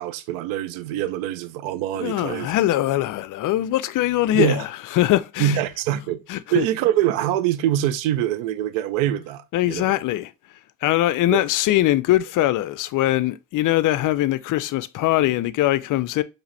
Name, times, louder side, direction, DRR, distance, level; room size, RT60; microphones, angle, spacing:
voice 1, 0.0-2.5 4.3-4.6 5.4-6.2 6.5-9.9 11.3-11.4, right 12 dB, 70° right, 0.7 m, -24 dB
voice 2, 2.0-5.6 6.3-6.6 9.5-10.3 10.8-16.2, left 15 dB, 45° left, 0.5 m, -22 dB
4.8 x 3.1 x 3.2 m
hypercardioid pair, 70°, 48 cm